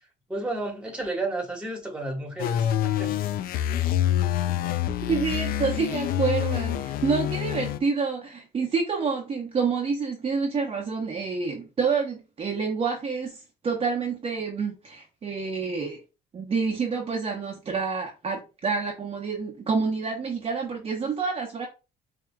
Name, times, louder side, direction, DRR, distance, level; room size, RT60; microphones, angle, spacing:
voice 1, 0.3-3.1, right 2 dB, 5° right, 1.4 m, -32 dB
sound 1, 2.4-7.8, left 11 dB, 60° left, 0.4 m, -26 dB
voice 2, 5.1-16.0 16.3-21.7, right 5 dB, 35° right, 0.8 m, -28 dB
4.7 x 2.8 x 2.2 m
cardioid pair, 110°, 17 cm